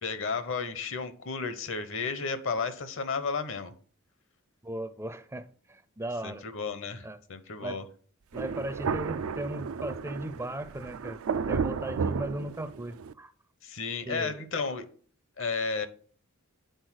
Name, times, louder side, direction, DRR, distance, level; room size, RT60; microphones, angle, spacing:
voice 1, 0.0-3.7 6.2-7.8 13.6-14.8 15.4-15.9, left 4 dB, 65° left, 1.0 m, -33 dB
voice 2, 4.6-6.4 7.0-7.2 7.6-7.8 8.3-11.2 11.5-13.3 14.0-14.4, right 1 dB, 15° right, 0.5 m, -37 dB
Thunder, 8.3-13.1, right 6 dB, 75° right, 0.4 m, -33 dB
7.9 x 4.3 x 6.2 m
head